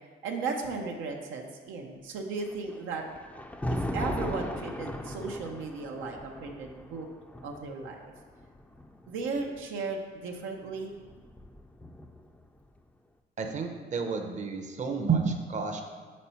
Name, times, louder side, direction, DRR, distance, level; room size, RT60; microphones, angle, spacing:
voice 1, 0.2-3.1 3.7-7.1 7.4-8.1 9.1-11.0, right 4 dB, 90° right, 2 dB, 0.7 m, -36 dB
Thunder, 2.4-9.6 10.6-12.4, left 1 dB, 5° left, 0.4 m, -38 dB
voice 2, 13.4-15.8, right 5 dB, 35° right, 4 dB, 0.6 m, -30 dB
4.2 x 4.1 x 5.6 m, 1.5 s
cardioid pair, 90°, 20 cm